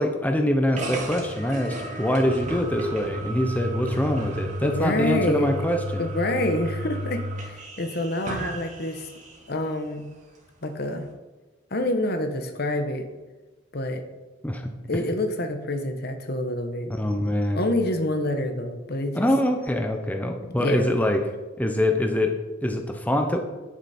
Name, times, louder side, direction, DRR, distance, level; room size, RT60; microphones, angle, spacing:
voice 1, 0.0-6.0 14.4-14.6 16.9-17.6 19.1-21.2 21.6-23.4, left 1 dB, 10° left, 4 dB, 0.8 m, -24 dB
sound 1, 0.8-9.5, right 1 dB, 40° right, 2.3 m, -33 dB
voice 2, 4.6-5.7 6.0-9.1 9.5-10.1 10.6-11.1 11.7-13.1 13.7-14.0 14.9-16.9 17.5-19.3 20.6-20.9, left 1 dB, 55° left, 7 dB, 1.2 m, -27 dB
10.0 x 9.7 x 4.4 m, 1.2 s
head